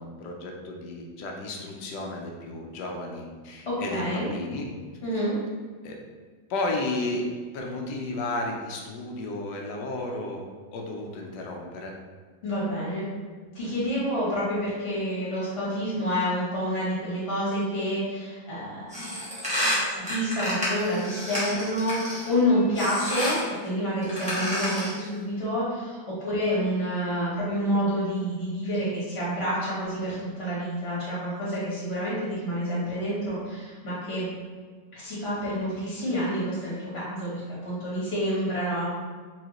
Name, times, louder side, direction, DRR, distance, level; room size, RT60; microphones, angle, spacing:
voice 1, 0.0-4.7 5.8-6.0 6.5-10.4 10.7-11.9, left 2 dB, 70° left, 1 dB, 1.1 m, -33 dB
voice 2, 3.6-4.3 5.0-5.3 12.4-13.0 13.5-19.6 20.0-34.3 34.9-38.8, equal, 40° left, -8 dB, 1.1 m, -28 dB
sound 1, 18.9-22.3 22.7-23.5 24.0-25.0, equal, 5° right, 0.7 m, -30 dB
4.2 x 2.7 x 2.9 m, 1.5 s
omnidirectional pair, 2.1 m